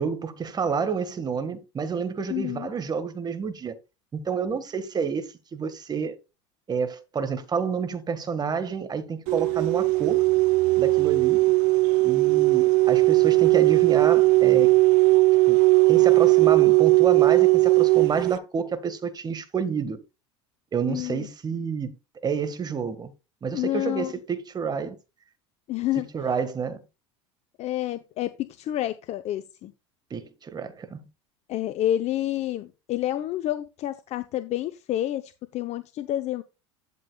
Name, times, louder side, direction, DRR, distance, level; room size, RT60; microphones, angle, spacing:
voice 1, 0.0-3.7 4.1-6.1 6.7-10.2 10.8-11.4 12.0-14.8 15.4-15.6 15.9-20.0 20.7-21.9 22.2-23.1 23.4-25.0 26.0-26.8 30.1-31.1, right 6 dB, 30° right, 1.7 m, -29 dB
voice 2, 2.3-2.7 20.9-21.3 23.5-24.1 25.7-26.0 27.6-29.7 31.5-36.4, left 13 dB, 50° left, 0.8 m, -29 dB
sound 1, 9.3-18.4, right 23 dB, 65° right, 0.7 m, -18 dB
12.0 x 7.4 x 2.4 m
hypercardioid pair, 90°, 15 cm